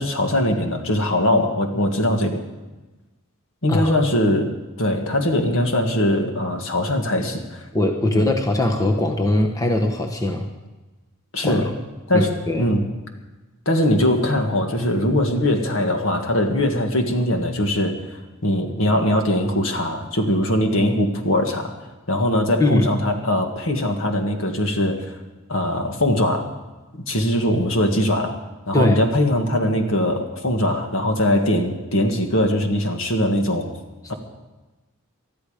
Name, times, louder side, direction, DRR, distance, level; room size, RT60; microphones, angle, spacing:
voice 1, 0.0-2.4 3.6-4.5 4.8-7.7 8.0-8.4 11.3-11.7 12.1-12.8 13.7-18.0 18.4-21.7 22.1-25.0 25.5-26.5 26.9-28.4 28.7-33.7, left 1 dB, 60° left, 4 dB, 1.9 m, -21 dB
voice 2, 7.7-10.5 11.4-11.7 12.1-12.7 22.6-22.9 28.7-29.0, left 1 dB, 15° left, 2 dB, 1.1 m, -21 dB
20.0 x 13.0 x 5.1 m, 1.1 s
head